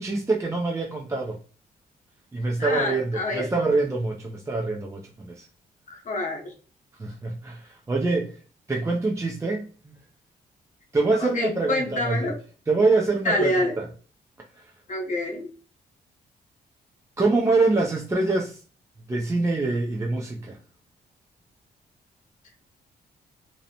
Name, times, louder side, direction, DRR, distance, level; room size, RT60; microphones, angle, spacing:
voice 1, 0.0-1.4 2.3-5.5 7.0-8.3 8.7-9.9 10.9-12.3 12.7-13.9 14.6-14.7 17.2-18.6 19.1-20.6, right 3 dB, 15° right, -1 dB, 0.4 m, -25 dB
voice 2, 2.6-3.5 5.9-6.5 11.2-12.4 13.2-13.7 14.9-15.5, left 1 dB, 45° left, 1 dB, 0.9 m, -27 dB
2.6 x 2.0 x 2.8 m, 0.38 s
cardioid pair, 80°, 17 cm